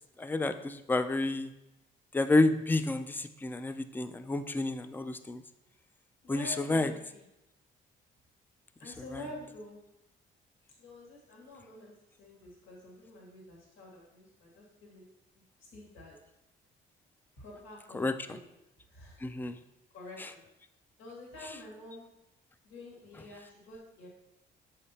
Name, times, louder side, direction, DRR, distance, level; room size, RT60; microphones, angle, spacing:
voice 1, 0.2-1.5 2.1-5.4 6.3-6.9 17.9-18.4 19.2-19.6 20.2-20.3, left 2 dB, 10° left, 10 dB, 0.4 m, -30 dB
voice 2, 6.2-7.2 8.8-9.8 10.8-11.9 12.2-15.0 15.6-16.2 17.4-18.5 18.9-19.2 19.9-20.4 21.0-22.1 22.6-24.1, left 1 dB, 85° left, -3 dB, 1.9 m, -48 dB
7.4 x 5.1 x 2.8 m, 0.91 s
cardioid pair, 90°, 20 cm